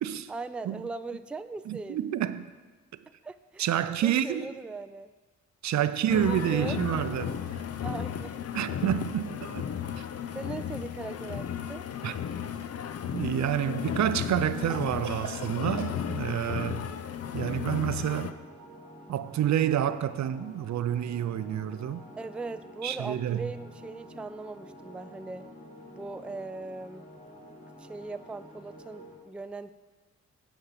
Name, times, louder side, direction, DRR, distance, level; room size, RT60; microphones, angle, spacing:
voice 1, 0.3-2.0 3.2-5.1 6.1-6.8 7.8-8.4 10.3-11.8 22.2-25.5 25.9-27.1 27.8-29.7, right 3 dB, 5° right, 0.3 m, -39 dB
voice 2, 1.7-2.5 3.6-4.5 5.6-7.4 8.5-10.0 12.0-12.2 13.1-16.8 17.3-18.3 19.1-22.0 22.8-23.5, right 11 dB, 70° right, 0.5 m, -29 dB
sound 1, 6.1-18.3, left 8 dB, 55° left, 0.6 m, -34 dB
Cough, 12.4-13.2 14.7-16.0, right 6 dB, 85° right, 1.2 m, -41 dB
sound 2, 17.3-29.2, left 1 dB, 25° left, 2.5 m, -49 dB
9.5 x 5.3 x 7.3 m
cardioid pair, 70°, 29 cm